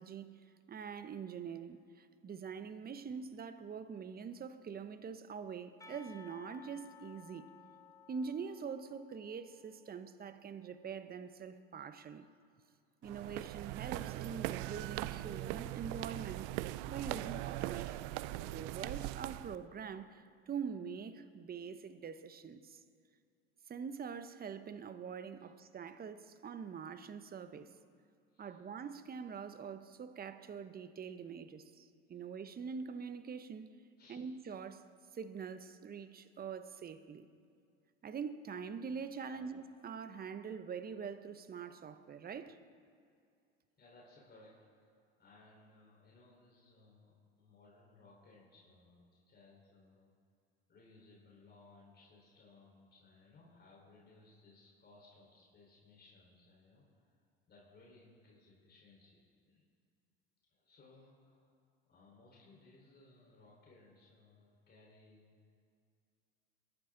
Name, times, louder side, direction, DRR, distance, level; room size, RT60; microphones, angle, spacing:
voice 1, 0.0-7.5 8.1-12.3 13.0-16.5 16.9-18.1 18.4-22.8 23.7-27.7 28.4-33.8 34.1-34.9 35.1-37.3 38.0-42.6, right 6 dB, 30° right, 1.0 m, -44 dB
Percussion, 5.8-10.7, left 6 dB, 10° left, 1.1 m, -59 dB
sound 1, 13.0-19.6, right 17 dB, 70° right, 0.5 m, -40 dB
voice 2, 43.8-50.1 50.7-59.2 59.4-59.6 60.5-61.6 61.9-65.5, left 3 dB, 35° left, 4.5 m, -62 dB
22.5 x 12.0 x 4.0 m
hypercardioid pair, 80°, 30 cm